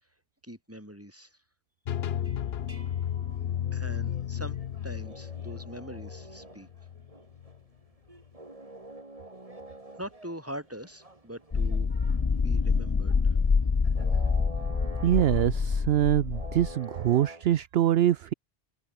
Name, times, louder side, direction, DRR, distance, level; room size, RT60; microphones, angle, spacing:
voice 1, 0.4-1.4 3.7-6.7 10.0-11.9 12.4-13.2, equal, 10° right, 7.2 m, -42 dB
sound 1, 1.9-7.6, left 10 dB, 65° left, 1.0 m, -33 dB
sound 2, 2.2-17.5, right 2 dB, 30° right, 3.1 m, -49 dB
sound 3, 11.5-16.7, left 5 dB, 30° left, 0.5 m, -26 dB
voice 2, 15.0-18.3, right 12 dB, 65° right, 0.8 m, -24 dB
omnidirectional pair, 1.1 m